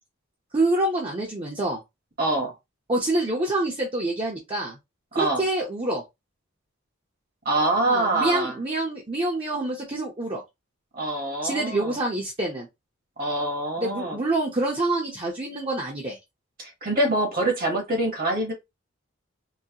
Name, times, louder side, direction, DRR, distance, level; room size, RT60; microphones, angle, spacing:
voice 1, 0.5-1.8 2.9-4.8 5.1-6.0 7.9-10.4 11.4-12.7 13.8-16.2, right 2 dB, 25° right, 0.7 m, -26 dB
voice 2, 2.2-2.5 5.1-5.5 7.4-8.6 10.9-12.0 13.2-14.2 16.6-18.5, right 2 dB, 40° right, 1.0 m, -25 dB
3.9 x 2.1 x 2.8 m
head